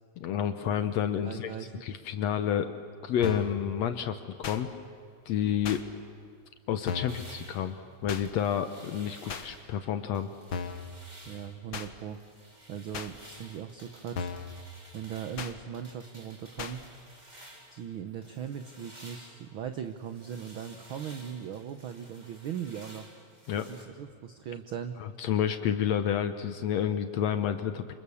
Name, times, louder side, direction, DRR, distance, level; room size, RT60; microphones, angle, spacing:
voice 1, 0.2-1.5 1.8-2.7 3.0-4.7 5.3-5.8 6.7-7.8 8.0-10.3 23.5-23.7 25.0-27.9, left 9 dB, 70° left, 10 dB, 1.9 m, -29 dB
voice 2, 1.2-1.9 11.2-12.2 12.7-14.3 14.9-16.8 17.7-23.1 23.7-25.0, right 8 dB, 65° right, 8 dB, 1.3 m, -39 dB
sound 1, 3.2-3.6 4.4-4.6 5.6-5.8 6.9-7.2 8.1-8.2 9.3-9.5 10.5-10.9 11.7-11.9 12.9-13.1 14.1-14.5 15.4-15.5 16.6-16.8, left 6 dB, 50° left, 1.6 m, -36 dB
sound 2, 7.1-9.7 10.1-11.6 12.0-17.9 18.2-23.8, right 1 dB, 15° right, 3.3 m, -53 dB
28.0 x 26.5 x 7.1 m, 2.4 s
omnidirectional pair, 3.4 m